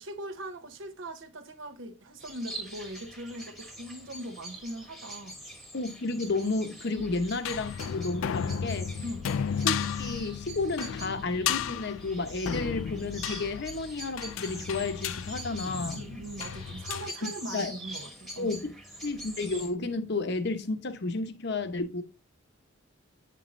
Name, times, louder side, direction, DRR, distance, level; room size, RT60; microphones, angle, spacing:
voice 1, 0.0-5.4 6.9-7.2 9.0-9.4 15.9-18.6, right 1 dB, 65° right, 0.9 m, -41 dB
sound 1, 2.2-19.7, right 1 dB, ahead, 1.1 m, -44 dB
voice 2, 5.7-9.0 9.6-16.0 17.2-17.7 18.4-18.7 19.0-22.0, left 3 dB, 55° left, 0.8 m, -32 dB
sound 2, 7.0-17.1, left 8 dB, 70° left, 0.3 m, -34 dB
8.5 x 5.4 x 2.6 m
head